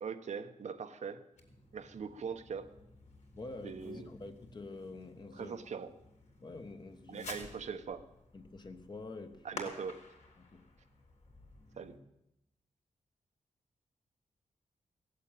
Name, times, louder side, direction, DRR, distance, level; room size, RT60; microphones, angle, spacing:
voice 1, 0.0-1.3 1.7-2.7 3.6-4.1 5.4-5.9 7.1-8.1 9.4-10.0 11.8-12.0, right 6 dB, 65° right, 1.0 m, -41 dB
Fireworks, 1.3-12.0, left 3 dB, 65° left, 3.5 m, -53 dB
voice 2, 3.3-5.6 6.4-7.3 8.3-9.6 10.4-10.7, left 3 dB, 35° left, 1.3 m, -47 dB
17.0 x 8.3 x 9.2 m
wide cardioid pair, 140°, 13 cm